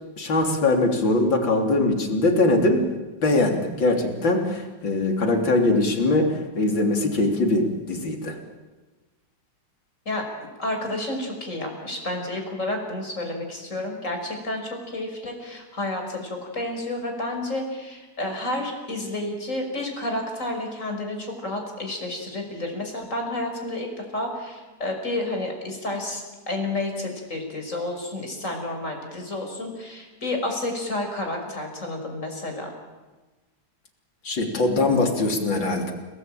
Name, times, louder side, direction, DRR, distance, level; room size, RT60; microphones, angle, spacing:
voice 1, 0.2-2.9 3.2-8.4 34.2-35.9, left 2 dB, 85° left, 3 dB, 4.1 m, -22 dB
voice 2, 10.6-23.9 24.1-32.7, left 1 dB, 40° left, 3 dB, 6.0 m, -30 dB
30.0 x 19.5 x 9.1 m, 1.2 s
omnidirectional pair, 2.0 m